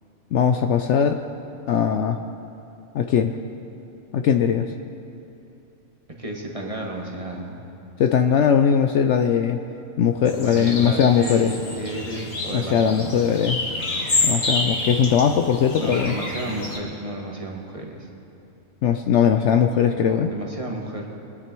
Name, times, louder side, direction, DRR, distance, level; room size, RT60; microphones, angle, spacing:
voice 1, 0.3-1.2 1.7-2.2 2.9-3.3 4.1-4.7 8.0-9.6 10.0-11.5 12.5-13.6 14.2-16.2 18.8-20.3, left 7 dB, 65° left, 7 dB, 0.8 m, -20 dB
voice 2, 6.2-7.6 10.3-13.4 15.8-18.1 20.0-21.1, right 1 dB, 25° right, -1 dB, 1.6 m, -32 dB
sound 1, 10.3-16.8, left 2 dB, 45° left, 2.0 m, -28 dB
23.0 x 9.9 x 4.6 m, 2.9 s
omnidirectional pair, 1.5 m